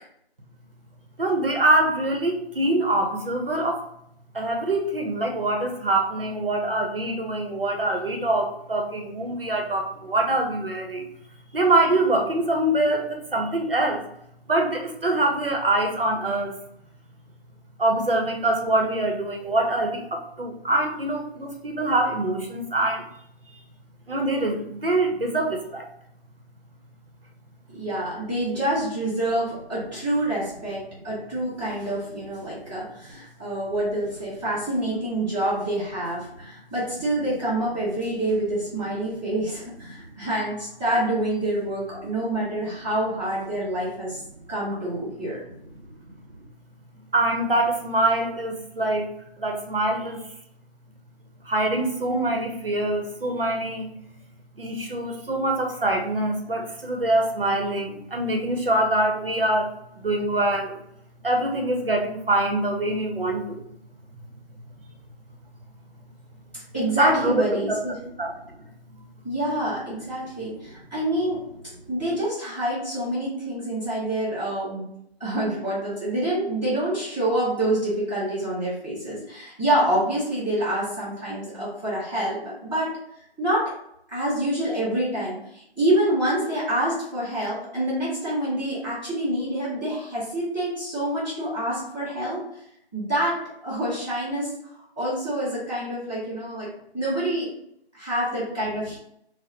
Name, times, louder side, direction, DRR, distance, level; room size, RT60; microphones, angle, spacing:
voice 1, 1.2-3.8 4.3-11.1 11.5-14.0 14.5-16.6 17.8-23.1 24.1-25.9 39.9-40.0 47.1-49.1 49.4-50.2 51.4-53.9 54.5-60.8 61.2-63.6 64.1-64.2 67.0-67.3 67.7-67.8 68.2-69.1, right 1 dB, 60° right, 2 dB, 0.7 m, -24 dB
voice 2, 27.7-44.2 44.5-45.4 66.7-67.9 69.2-71.4 71.9-74.8 75.2-82.9 83.4-83.7 84.1-92.4 92.9-93.4 93.6-94.5 95.0-96.7 96.9-97.5 97.9-99.0, right 1 dB, 10° left, -15 dB, 1.0 m, -27 dB
4.5 x 2.0 x 2.8 m, 0.73 s
figure-of-eight pair, 170°, 32 cm